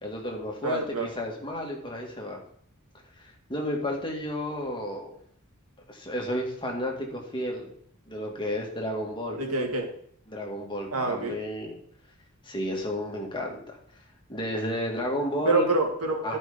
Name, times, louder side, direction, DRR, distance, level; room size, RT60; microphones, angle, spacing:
voice 1, 0.0-2.4 3.5-5.1 5.9-7.7 8.1-9.4 10.3-11.7 12.5-13.8 14.3-15.7 16.2-16.4, left 1 dB, 20° left, 0 dB, 2.1 m, -32 dB
voice 2, 0.6-1.1 9.4-9.9 10.9-11.4 15.5-16.4, right 3 dB, 85° right, 2 dB, 2.2 m, -26 dB
12.5 x 5.5 x 5.1 m, 0.64 s
head